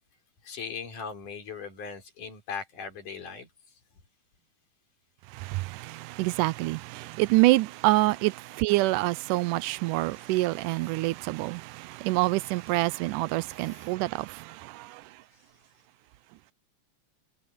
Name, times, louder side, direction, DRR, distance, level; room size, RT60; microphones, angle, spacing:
voice 1, 0.4-3.5 10.3-10.4 13.6-13.8, left 6 dB, 75° left, 5.8 m, -39 dB
voice 2, 5.3-15.0, right 19 dB, 85° right, 2.1 m, -26 dB
omnidirectional pair, 3.7 m